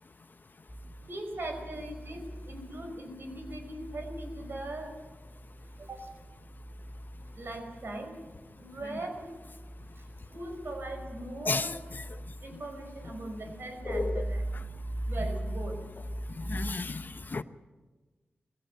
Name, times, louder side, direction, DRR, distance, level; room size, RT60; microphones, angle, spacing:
sound 1, 0.7-16.7, right 1 dB, 20° left, 2.1 m, -40 dB
voice 1, 1.1-4.9 5.8-6.1 7.3-8.1 8.6-9.3 10.0-10.1 10.3-11.7 12.4-14.4 15.1-15.8, right 2 dB, 65° right, 4 dB, 5.6 m, -40 dB
voice 2, 11.5-12.0 13.8-14.2 16.4-17.4, left 3 dB, 50° left, 12 dB, 0.8 m, -33 dB
19.5 x 16.0 x 9.1 m, 1.2 s
cardioid pair, 65°, 4 cm